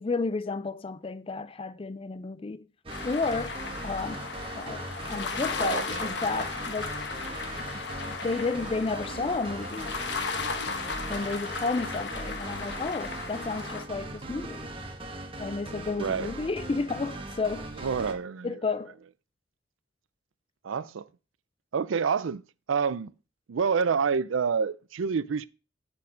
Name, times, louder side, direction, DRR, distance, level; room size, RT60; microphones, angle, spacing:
voice 1, 0.0-2.7 3.0-4.3 4.6-7.0 7.6-7.7 8.1-10.0 11.1-14.7 15.4-17.9 18.4-19.0, left 3 dB, 30° left, 0.4 m, -32 dB
sound 1, 2.8-18.1, right 2 dB, 25° right, 1.2 m, -39 dB
sound 2, 2.9-13.8, left 4 dB, 60° left, 1.1 m, -36 dB
voice 2, 5.6-6.4 16.0-16.3 17.8-18.5 20.6-21.1 21.7-22.4 22.7-23.1 23.5-25.5, right 6 dB, 85° right, 0.5 m, -28 dB
8.0 x 6.0 x 5.0 m
head